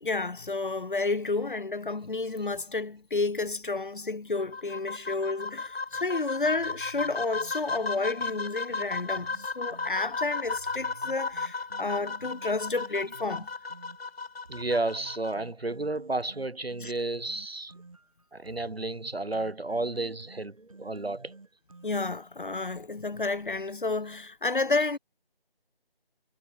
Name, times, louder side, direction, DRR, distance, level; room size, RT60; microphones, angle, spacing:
voice 1, 0.0-13.5 16.8-16.9 21.8-25.0, left 3 dB, 55° left, 1.0 m, -31 dB
sound 1, 4.3-15.3, left 4 dB, 85° left, 1.2 m, -35 dB
sound 2, 6.4-10.0 10.4-14.0 14.4-22.2, right 3 dB, 35° right, 5.6 m, -51 dB
voice 2, 14.5-17.7 18.3-21.4, right 2 dB, 80° right, 5.0 m, -32 dB
figure-of-eight pair, 180°, 30 cm